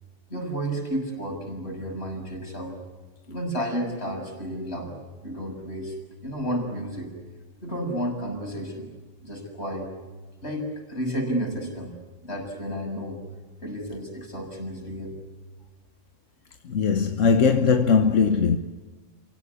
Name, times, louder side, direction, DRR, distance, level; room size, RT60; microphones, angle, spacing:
voice 1, 0.3-2.8 3.3-4.9 5.2-6.0 6.2-7.1 7.6-8.9 9.2-10.0 10.4-11.9 12.2-13.2 13.6-15.2, equal, 60° left, 7.4 m, -31 dB
voice 2, 16.6-18.6, left 5 dB, 90° left, 1.5 m, -20 dB
28.5 x 17.0 x 9.9 m
omnidirectional pair, 1.3 m